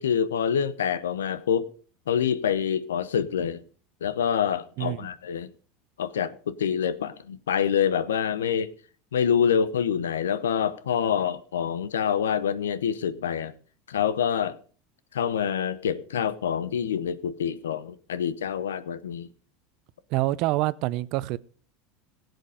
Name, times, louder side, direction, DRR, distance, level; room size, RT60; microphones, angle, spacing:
voice 1, 0.0-1.7 2.1-3.6 4.0-5.5 6.0-8.7 9.1-13.5 13.9-14.6 15.1-19.3, left 8 dB, 90° left, 0.8 m, -26 dB
voice 2, 4.8-5.1 20.1-21.4, right 18 dB, 60° right, 0.6 m, -26 dB
16.5 x 8.1 x 5.0 m
hypercardioid pair, 95°, 0 cm